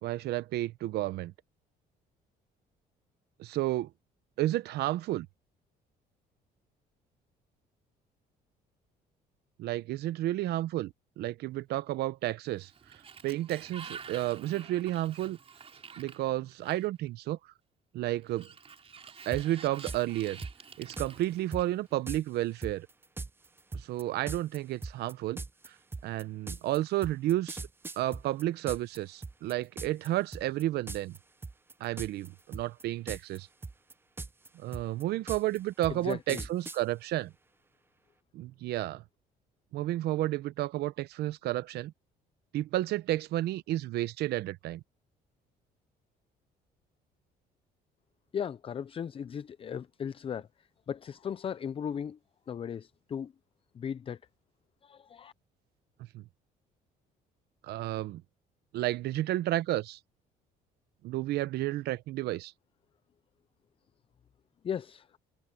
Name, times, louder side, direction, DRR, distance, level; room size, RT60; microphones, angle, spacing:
voice 1, 0.0-1.3 3.4-3.9 4.4-5.3 9.6-12.7 13.2-15.4 16.0-17.4 17.9-18.5 19.3-20.4 20.8-22.9 23.7-25.4 26.0-27.6 28.0-31.2 31.8-33.5 34.5-37.3 38.3-39.0 39.7-41.9 42.5-44.8 56.1-56.2 57.6-58.2 58.7-60.0 61.0-62.5, right 15 dB, 75° right, 0.8 m, -31 dB
Sliding door, 12.5-17.1 18.2-21.9, right 6 dB, 35° right, 3.4 m, -49 dB
sound 1, 19.3-19.4 19.9-20.0 20.4-21.1 21.5-21.6 22.1-22.2 22.6-29.0 29.2-30.1 30.3-30.6 30.9-31.2 31.4-32.3 32.5-33.4 33.6-36.8, right 3 dB, 15° right, 0.6 m, -39 dB
voice 2, 35.9-36.4 48.3-52.2 52.5-53.3 53.7-54.2 54.8-55.3 64.6-65.1, left 8 dB, 35° left, 0.5 m, -37 dB
cardioid pair, 110°, 17 cm